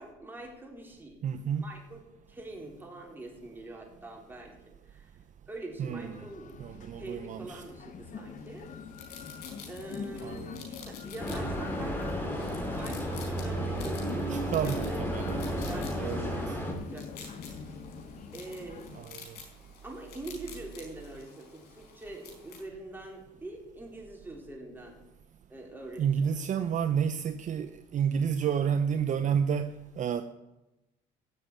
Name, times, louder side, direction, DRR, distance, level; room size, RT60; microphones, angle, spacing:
voice 1, 0.0-1.2 1.6-2.0 2.3-5.1 5.5-6.5 7.0-8.7 9.1-9.2 9.7-10.4 10.7-15.0 15.4-17.3 18.3-18.9 19.8-25.0 25.5-26.3, right 2 dB, 10° right, 4.2 m, -44 dB
voice 2, 1.2-1.7 5.8-6.3 6.6-7.6 10.2-10.6 14.3-15.5 15.9-16.6 18.9-19.4 26.0-30.2, right 7 dB, 45° right, 0.8 m, -30 dB
sound 1, 5.9-19.1, left 6 dB, 50° left, 1.2 m, -43 dB
sound 2, 8.5-22.6, left 5 dB, 75° left, 4.4 m, -50 dB
sound 3, 11.2-16.7, right 1 dB, 10° left, 3.5 m, -33 dB
16.5 x 6.8 x 8.6 m
cardioid pair, 110°, 17 cm